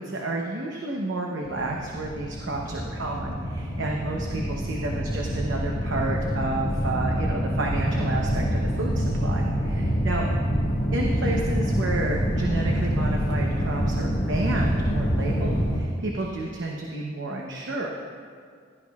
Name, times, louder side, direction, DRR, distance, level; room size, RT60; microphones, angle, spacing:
voice 1, 0.0-10.2 10.9-17.9, right 2 dB, 75° right, 0 dB, 0.9 m, -31 dB
sound 1, 1.4-15.8, equal, 50° left, 1.5 m, -26 dB
15.5 x 11.5 x 2.4 m, 2.1 s
head